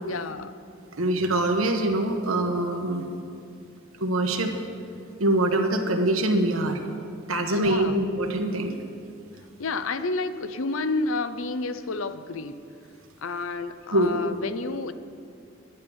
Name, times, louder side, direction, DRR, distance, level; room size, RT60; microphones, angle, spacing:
voice 1, 0.0-0.6 7.5-8.0 9.6-12.6 13.2-14.9, left 3 dB, 75° left, 12 dB, 0.6 m, -30 dB
voice 2, 0.9-3.1 4.0-4.5 5.2-6.8 7.3-8.7 13.9-14.2, right 1 dB, 80° right, 4 dB, 1.2 m, -24 dB
11.5 x 9.7 x 7.1 m, 2.5 s
head